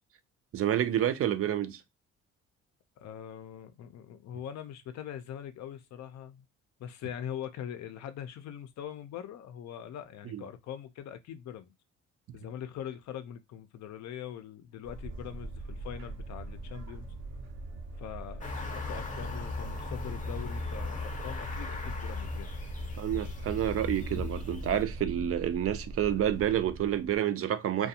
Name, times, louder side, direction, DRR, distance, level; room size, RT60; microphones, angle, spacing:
voice 1, 0.5-1.8 10.3-10.4 23.0-27.9, right 10 dB, 50° right, 0.4 m, -29 dB
voice 2, 3.0-6.4 6.8-11.7 12.3-17.1 18.0-22.5, left 9 dB, 65° left, 0.5 m, -42 dB
sound 1, 14.8-27.2, right 2 dB, 85° right, 0.8 m, -41 dB
sound 2, 18.4-24.8, left 4 dB, 25° left, 0.7 m, -38 dB
2.4 x 2.2 x 2.7 m
cardioid pair, 90°, 30 cm